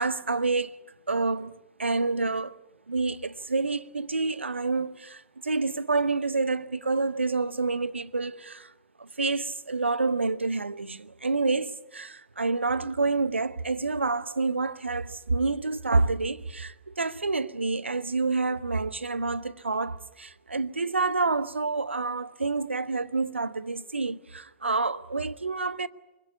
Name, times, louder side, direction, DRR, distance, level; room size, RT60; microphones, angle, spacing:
voice 1, 0.0-1.5 1.8-2.6 2.9-8.7 9.0-25.9, right 3 dB, 80° right, 0.9 m, -28 dB
25.0 x 21.0 x 9.8 m
figure-of-eight pair, 100°, 6 cm